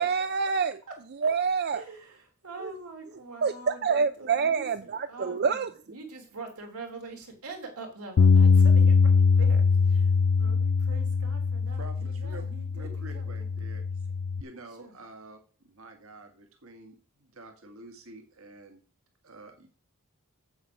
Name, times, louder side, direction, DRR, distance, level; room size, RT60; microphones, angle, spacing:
voice 1, 0.0-0.7 1.2-1.8 3.4-5.7, right 5 dB, 50° right, 0.5 m, -26 dB
voice 2, 0.9-1.3 1.7-13.7 14.7-15.0, right 3 dB, 85° right, 3.2 m, -44 dB
Bass guitar, 8.2-14.4, left 5 dB, 60° left, 0.4 m, -22 dB
voice 3, 11.8-13.8 14.4-15.4 15.6-18.8 19.2-19.7, right 2 dB, 65° right, 1.9 m, -48 dB
7.9 x 7.8 x 5.9 m
head